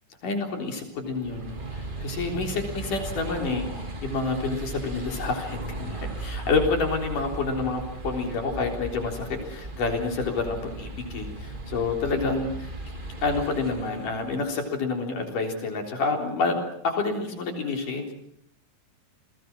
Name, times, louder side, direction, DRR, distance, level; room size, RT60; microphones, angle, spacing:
voice 1, 0.2-12.5 13.2-18.1, left 3 dB, 45° left, 3 dB, 5.0 m, -28 dB
sound 1, 1.0-14.5, right 1 dB, 50° right, 0.5 m, -37 dB
30.0 x 21.5 x 6.1 m, 0.70 s
omnidirectional pair, 5.4 m